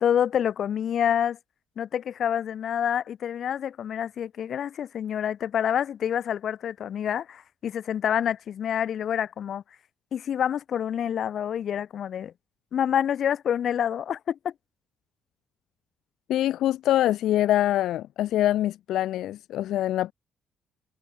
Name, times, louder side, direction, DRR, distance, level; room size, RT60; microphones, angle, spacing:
voice 1, 0.0-1.4 1.8-9.6 10.1-12.3 12.7-14.5, left 9 dB, 45° left, 1.3 m, -27 dB
voice 2, 16.3-20.1, left 13 dB, 70° left, 1.7 m, -24 dB
cardioid pair, 180°, 0 cm